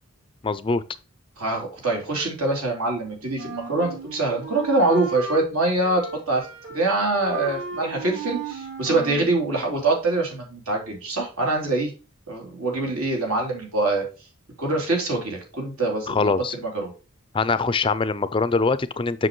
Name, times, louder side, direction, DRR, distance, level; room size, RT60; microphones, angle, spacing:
voice 1, 0.4-0.8 16.1-16.5 17.3-19.3, left 4 dB, 25° left, 0.3 m, -23 dB
voice 2, 1.4-6.5 6.7-11.9 12.3-14.1 14.6-16.9, right 2 dB, 80° right, 3.5 m, -24 dB
Wind instrument woodwind instrument, 3.4-5.5 5.8-6.9 7.1-9.3, right 4 dB, 55° right, 1.8 m, -35 dB
7.5 x 6.0 x 3.1 m
head